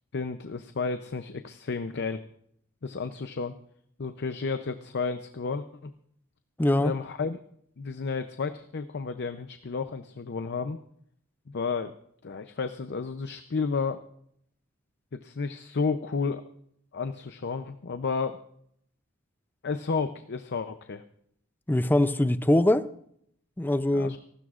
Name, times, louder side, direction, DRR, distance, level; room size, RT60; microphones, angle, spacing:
voice 1, 0.1-2.2 2.8-3.5 4.0-5.9 6.8-7.4 7.8-10.8 11.5-11.9 12.2-14.0 15.1-16.4 16.9-18.4 19.6-21.0 23.9-24.2, left 4 dB, 55° left, 0.6 m, -32 dB
voice 2, 6.6-6.9 21.7-22.9 23.6-24.1, left 1 dB, 10° left, 0.4 m, -22 dB
29.5 x 12.5 x 2.5 m
head